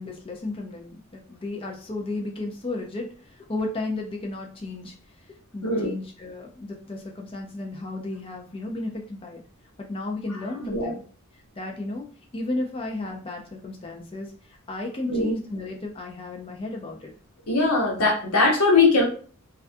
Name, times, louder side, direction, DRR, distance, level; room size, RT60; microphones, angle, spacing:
voice 1, 0.0-4.9 5.5-9.4 9.8-11.0 11.5-12.1 12.3-17.1, left 2 dB, 25° left, 1 dB, 0.4 m, -33 dB
voice 2, 10.6-10.9 15.1-15.3 17.5-19.0, left 3 dB, 90° left, -1 dB, 0.9 m, -21 dB
2.3 x 2.2 x 2.5 m, 0.42 s
head